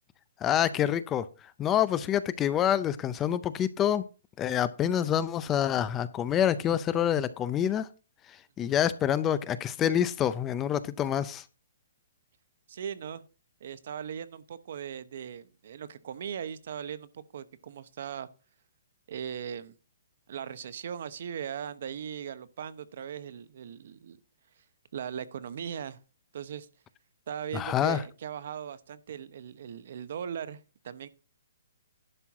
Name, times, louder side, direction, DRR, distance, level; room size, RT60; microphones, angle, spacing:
voice 1, 0.4-1.3 1.6-4.0 4.4-7.9 8.6-11.4 27.5-28.0, left 10 dB, 15° left, 0.5 m, -27 dB
voice 2, 12.7-13.2 13.6-18.3 19.1-19.7 20.3-24.2 24.9-26.0 26.3-26.7 27.3-30.6 30.8-31.1, right 8 dB, 55° right, 0.8 m, -39 dB
11.0 x 4.5 x 6.0 m
hypercardioid pair, 160°, 0 cm